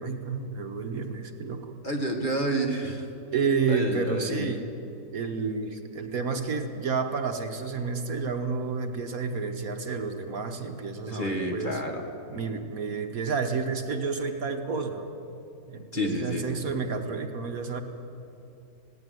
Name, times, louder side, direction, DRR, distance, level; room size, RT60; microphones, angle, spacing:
voice 1, 0.0-1.8 3.3-4.7 5.1-11.8 12.3-15.0 15.7-17.8, right 4 dB, 60° right, 5 dB, 1.5 m, -30 dB
voice 2, 1.8-3.1 3.7-4.5 11.1-12.0 15.9-16.5, right 1 dB, 30° left, 2 dB, 2.0 m, -29 dB
19.5 x 17.0 x 9.4 m, 2.8 s
omnidirectional pair, 1.8 m